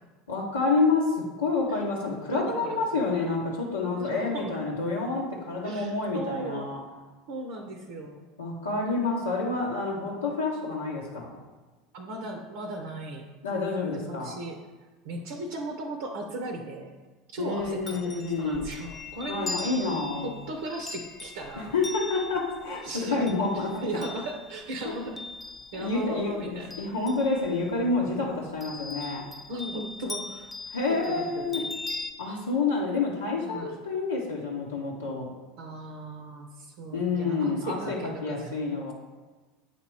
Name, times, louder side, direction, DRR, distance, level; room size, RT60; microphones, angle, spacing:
voice 1, 0.3-6.8 8.4-11.4 13.4-14.3 17.4-18.6 19.3-20.3 21.6-23.8 25.7-29.3 30.7-31.6 32.2-35.3 36.9-38.9, left 3 dB, 85° left, -5 dB, 0.9 m, -28 dB
voice 2, 2.3-3.0 4.0-4.6 5.6-6.7 7.3-8.3 11.9-13.3 13.9-14.6 15.0-16.9 17.3-19.6 20.2-21.7 22.8-25.3 25.7-26.7 28.3-28.5 29.5-30.5 30.9-31.7 33.4-33.7 35.6-38.9, right 1 dB, 65° right, 3 dB, 0.6 m, -37 dB
Chime, 17.6-26.1 26.4-27.8 28.6-32.1, left 3 dB, 20° left, 0.5 m, -40 dB
7.7 x 2.9 x 4.6 m, 1.3 s
hypercardioid pair, 75°, 0 cm